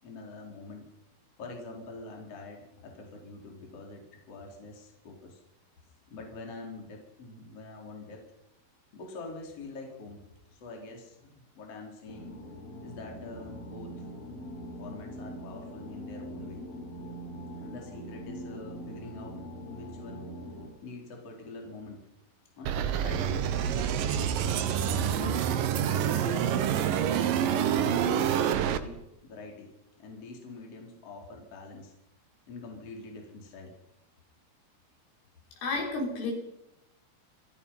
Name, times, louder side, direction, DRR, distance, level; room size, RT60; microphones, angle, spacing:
voice 1, 0.0-0.9 1.4-5.4 6.1-8.3 8.9-10.2 10.5-12.4 12.8-14.1 14.8-16.7 17.6-19.4 19.7-20.3 20.8-22.1 22.6-24.0 24.5-25.5 25.8-26.8 27.3-31.9 32.5-33.7, left 3 dB, 30° left, 1 dB, 4.8 m, -45 dB
sound 1, 12.1-20.7, equal, 50° left, 5.6 m, -42 dB
sound 2, 22.6-28.8, right 9 dB, 70° right, 2.1 m, -27 dB
voice 2, 35.6-36.3, left 3 dB, 70° left, 0 dB, 8.2 m, -31 dB
28.0 x 17.5 x 5.7 m, 0.89 s
omnidirectional pair, 5.8 m